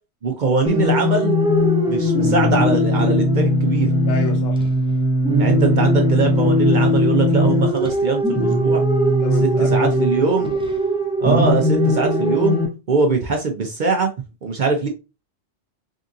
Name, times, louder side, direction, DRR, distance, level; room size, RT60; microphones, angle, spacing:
voice 1, 0.2-1.4 1.9-3.9 5.4-8.8 9.4-10.6 11.2-12.6 12.9-14.1 14.4-14.9, right 4 dB, 55° right, 0.6 m, -22 dB
sound 1, 0.7-12.7, equal, 10° right, 0.3 m, -18 dB
voice 2, 4.1-4.7 9.0-10.6, left 5 dB, 75° left, 1.1 m, -32 dB
3.6 x 2.4 x 2.6 m
omnidirectional pair, 1.2 m